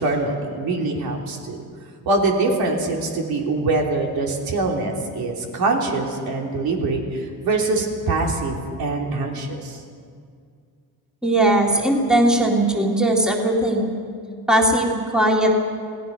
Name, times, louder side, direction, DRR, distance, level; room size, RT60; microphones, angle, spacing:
voice 1, 0.0-1.6 2.1-9.8, right 3 dB, 75° right, 0 dB, 3.4 m, -23 dB
voice 2, 11.2-13.9 14.5-15.5, right 1 dB, ahead, -1 dB, 2.2 m, -19 dB
29.0 x 18.0 x 5.4 m, 2.2 s
cardioid pair, 165°, 37 cm